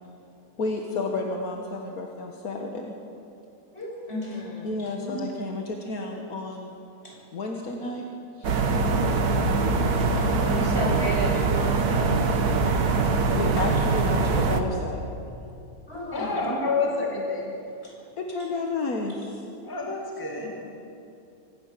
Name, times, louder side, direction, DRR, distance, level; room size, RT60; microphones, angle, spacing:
voice 1, 0.6-3.0 4.6-6.8 7.3-8.0 8.4-8.7 12.0-12.1 13.3-15.0 18.2-19.4, left 3 dB, 70° left, 1 dB, 1.9 m, -31 dB
voice 2, 3.7-4.9 7.0-7.1 10.0-12.1 15.9-16.5 17.8-17.9 20.3-20.5, equal, 40° left, -4 dB, 6.9 m, -33 dB
sound 1, 8.4-14.6, right 3 dB, 90° right, 1.7 m, -23 dB
voice 3, 16.1-17.6 19.6-20.5, left 3 dB, 15° left, -1 dB, 2.2 m, -28 dB
24.5 x 17.5 x 6.7 m, 2.6 s
omnidirectional pair, 1.6 m